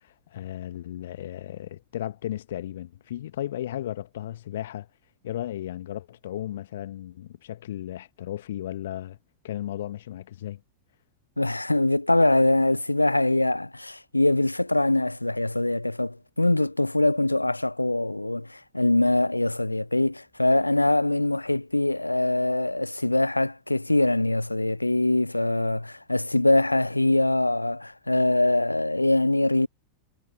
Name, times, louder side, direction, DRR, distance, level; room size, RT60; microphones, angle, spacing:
voice 1, 0.0-4.9 5.2-9.2 9.4-10.6, left 12 dB, 60° left, 1.2 m, -35 dB
voice 2, 11.4-29.7, left 2 dB, 85° left, 0.4 m, -23 dB
figure-of-eight pair, 90°, 0 cm